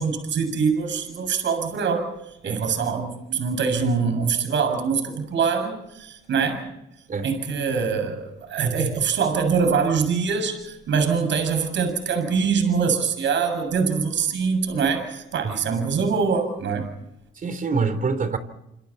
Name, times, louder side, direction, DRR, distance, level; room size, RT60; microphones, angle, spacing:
voice 1, 0.0-2.1 2.4-6.7 7.2-16.9, right 5 dB, 70° right, 7 dB, 7.1 m, -24 dB
voice 2, 17.4-18.4, right 4 dB, 45° right, 11 dB, 3.7 m, -25 dB
28.0 x 28.0 x 4.4 m, 0.85 s
cardioid pair, 90°, 20 cm